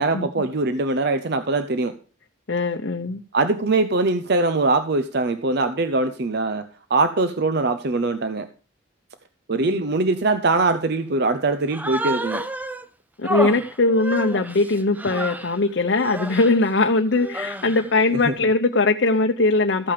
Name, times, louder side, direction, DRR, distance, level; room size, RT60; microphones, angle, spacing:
voice 1, 0.0-1.9 3.3-8.5 9.5-12.4 18.2-18.3, right 3 dB, 55° right, 10 dB, 0.7 m, -22 dB
voice 2, 2.5-3.2 9.7-9.8 13.2-19.9, left 3 dB, 60° left, 4 dB, 0.8 m, -20 dB
Human voice, 11.7-12.8 13.2-15.6 15.9-16.6 17.1-17.9, right 1 dB, 10° right, 0.6 m, -30 dB
14.0 x 8.8 x 5.1 m, 0.38 s
head